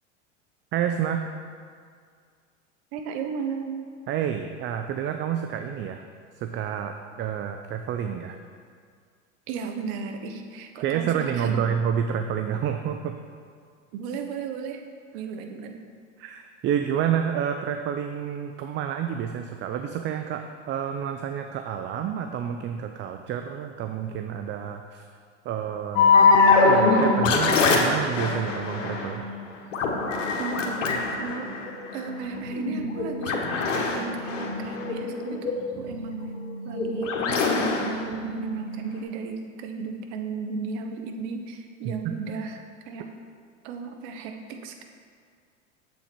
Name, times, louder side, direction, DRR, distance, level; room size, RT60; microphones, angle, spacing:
voice 1, 0.7-1.2 4.1-6.0 6.4-8.4 10.8-13.1 16.2-25.0 25.5-26.1 26.7-29.2 41.8-42.0, right 8 dB, 30° right, 6 dB, 0.5 m, -29 dB
voice 2, 2.9-3.8 9.5-11.6 13.9-14.8 15.1-15.8 30.4-31.5 31.9-36.2 36.6-43.1 43.6-44.8, right 5 dB, 60° right, 5 dB, 1.1 m, -35 dB
sound 1, 26.0-39.0, left 4 dB, 80° left, 1.4 m, -24 dB
7.4 x 7.3 x 4.4 m, 2.1 s
hypercardioid pair, 95°, 37 cm